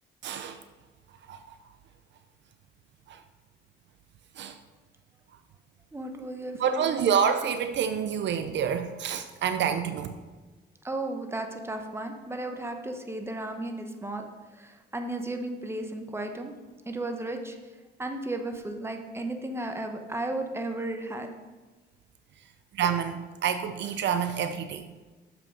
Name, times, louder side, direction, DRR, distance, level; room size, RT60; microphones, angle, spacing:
voice 1, 0.2-0.6 1.3-1.6 3.1-3.2 4.3-4.6 6.6-10.2 22.7-24.9, right 7 dB, 65° right, 10 dB, 0.5 m, -28 dB
voice 2, 5.9-7.0 10.8-14.3 14.5-16.5 16.9-17.6 18.0-21.3, right 2 dB, 10° right, 5 dB, 1.0 m, -34 dB
6.8 x 6.0 x 5.3 m, 1.3 s
cardioid pair, 90°, 20 cm